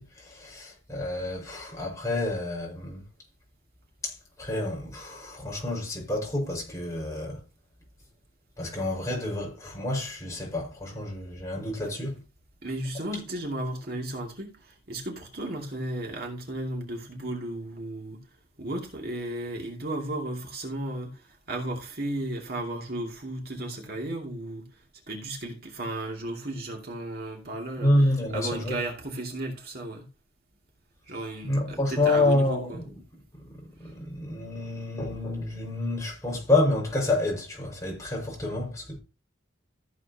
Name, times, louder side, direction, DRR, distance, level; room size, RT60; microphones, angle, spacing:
voice 1, 0.0-3.0 4.0-7.4 8.6-12.2 27.8-28.8 31.4-32.8 33.3-39.0, left 2 dB, 15° left, 5.3 m, -28 dB
voice 2, 12.6-18.3 18.6-27.9 28.3-30.1 31.1-32.8 33.8-33.9, right 1 dB, 50° right, 2.6 m, -34 dB
15.0 x 7.8 x 2.9 m
head